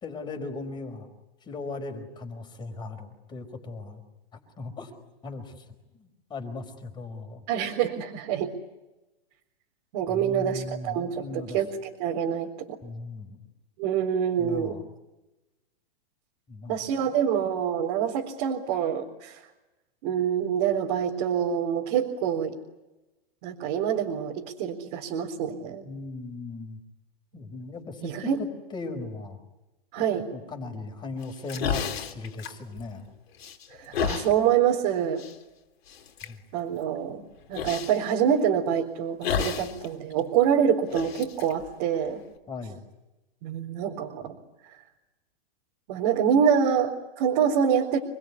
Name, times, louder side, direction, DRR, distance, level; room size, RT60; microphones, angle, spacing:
voice 1, 0.0-1.1 1.4-4.0 4.6-4.9 5.2-5.5 6.0-7.4 10.1-11.6 12.8-13.4 14.4-14.8 16.5-17.1 25.8-26.8 27.3-28.3 28.7-29.4 30.3-33.0 36.3-36.4 42.5-42.8, left 3 dB, 15° left, 6 dB, 4.7 m, -38 dB
voice 2, 7.5-8.5 9.9-12.8 13.8-14.8 16.7-19.4 20.0-22.6 23.4-25.9 28.0-28.4 29.9-30.3 33.8-35.2 36.5-37.2 37.5-42.2 43.4-44.3 44.7-44.8 45.9-48.0, right 8 dB, 45° right, -2 dB, 4.0 m, -26 dB
sound 1, 31.2-33.1 33.4-34.3 35.2-35.3 35.9-36.3 37.5-38.0 39.2-39.8 40.1-40.2 40.9-42.4, left 8 dB, 85° left, 3.6 m, -31 dB
28.0 x 21.5 x 9.8 m, 1.0 s
hypercardioid pair, 155°, 30 cm